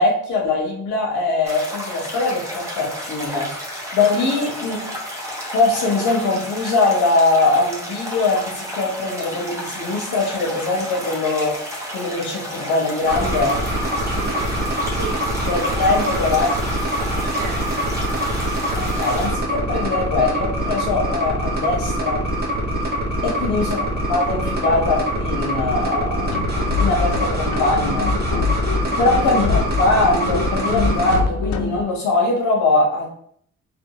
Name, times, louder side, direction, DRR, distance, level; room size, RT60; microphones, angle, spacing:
voice 1, 0.0-3.5 3.9-4.8 5.5-13.5 15.5-16.5 18.7-22.2 23.2-23.8 24.1-26.3 26.8-28.1 29.0-33.1, left 3 dB, 85° left, -2 dB, 1.6 m, -21 dB
sound 1, 1.4-19.3, equal, 10° right, 1.2 m, -32 dB
sound 2, 13.1-31.2, equal, 35° right, 1.1 m, -24 dB
voice 2, 14.2-14.6 14.9-15.3 17.3-17.9 23.1-23.7 28.8-29.3, right 4 dB, 65° right, 1 dB, 1.0 m, -35 dB
sound 3, 26.2-31.8, left 5 dB, 65° left, 0.5 m, -25 dB
3.3 x 3.2 x 3.1 m, 0.64 s
cardioid pair, 90°, 30 cm